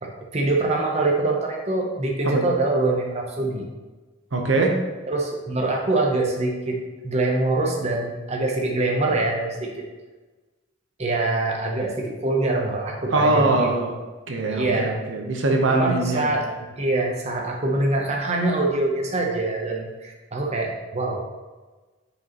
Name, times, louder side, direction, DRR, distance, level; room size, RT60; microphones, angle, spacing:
voice 1, 0.0-3.7 5.1-9.7 11.0-13.7 14.5-15.0 15.7-21.3, right 2 dB, 35° right, 0 dB, 0.7 m, -24 dB
voice 2, 4.3-4.8 13.1-13.9 14.3-16.3, right 2 dB, 70° right, 2 dB, 0.9 m, -22 dB
6.6 x 5.1 x 2.9 m, 1.3 s
head